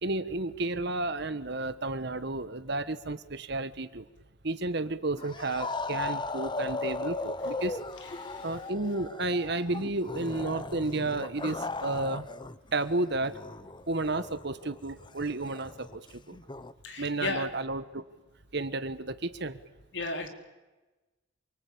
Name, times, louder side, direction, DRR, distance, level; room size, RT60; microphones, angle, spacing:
voice 1, 0.0-4.1 4.4-7.8 8.4-12.2 12.7-13.4 13.9-16.0 16.3-16.4 17.0-18.0 18.5-19.6, right 2 dB, 60° right, 12 dB, 1.5 m, -32 dB
sound 1, 5.2-12.6 12.8-16.7, left 3 dB, 25° left, 0.8 m, -37 dB
voice 2, 16.8-17.5 19.9-20.3, left 3 dB, 60° left, 4 dB, 4.2 m, -34 dB
27.5 x 25.0 x 8.7 m, 1.1 s
head